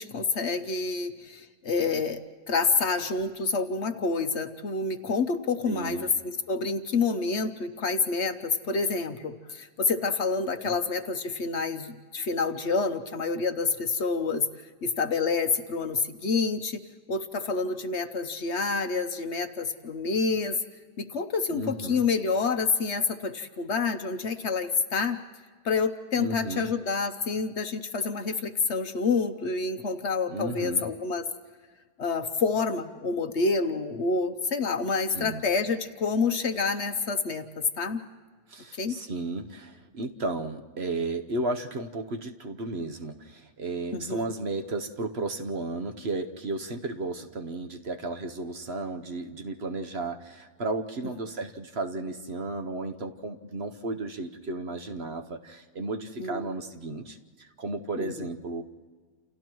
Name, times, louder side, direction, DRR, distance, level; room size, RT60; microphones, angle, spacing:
voice 1, 0.0-2.2 2.5-14.5 14.8-16.8 17.1-20.6 21.0-25.2 25.6-31.3 32.0-37.4 37.8-38.0 38.7-39.0 43.9-44.3 56.2-56.4 58.0-58.3, left 4 dB, 55° left, 9 dB, 1.0 m, -28 dB
voice 2, 5.6-6.1 10.6-10.8 21.5-22.0 26.2-26.7 30.3-30.9 35.1-35.4 38.5-58.6, right 2 dB, 50° right, 5 dB, 1.1 m, -34 dB
29.0 x 29.0 x 3.1 m, 1.5 s
omnidirectional pair, 1.5 m